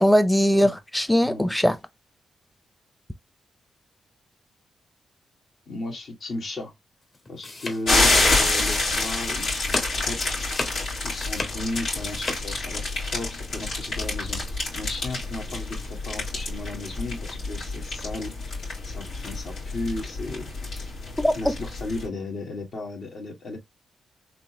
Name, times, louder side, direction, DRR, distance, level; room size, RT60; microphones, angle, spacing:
voice 1, 0.0-1.8 21.2-21.5, equal, 5° left, 0.7 m, -20 dB
voice 2, 5.7-6.7 7.3-10.4 11.0-20.9 21.4-23.6, left 2 dB, 65° left, 1.8 m, -35 dB
sound 1, 7.1-9.0 9.3-10.0 10.3-12.4, left 2 dB, 50° left, 1.5 m, -34 dB
sound 2, 7.9-22.1, left 2 dB, 85° left, 2.4 m, -27 dB
4.1 x 3.0 x 2.9 m
supercardioid pair, 50°, 0 cm